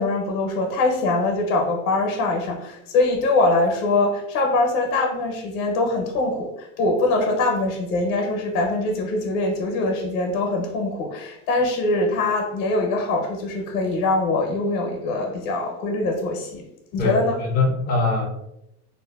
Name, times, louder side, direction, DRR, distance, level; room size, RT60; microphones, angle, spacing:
voice 1, 0.0-16.7 16.9-17.4, left 2 dB, 55° left, 0.8 m, -23 dB
voice 2, 17.0-18.3, left 3 dB, 20° left, 0.4 m, -22 dB
2.7 x 2.2 x 2.2 m
supercardioid pair, 120°, 47 cm